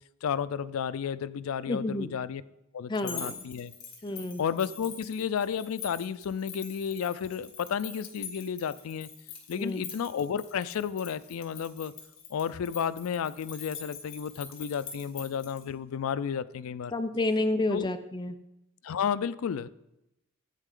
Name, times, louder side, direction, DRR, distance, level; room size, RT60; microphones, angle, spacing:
voice 1, 0.2-2.4 2.7-3.7 4.4-9.1 9.5-11.9 12.3-16.9 17.7-17.9 18.8-19.7, left 7 dB, 85° left, 15 dB, 0.4 m, -32 dB
voice 2, 1.7-2.1 2.9-3.4 4.0-4.4 9.6-9.9 16.9-18.4, left 2 dB, 20° left, 9 dB, 0.5 m, -30 dB
sound 1, 2.9-15.6, left 6 dB, 60° left, 2.1 m, -44 dB
10.0 x 8.3 x 3.7 m, 0.89 s
head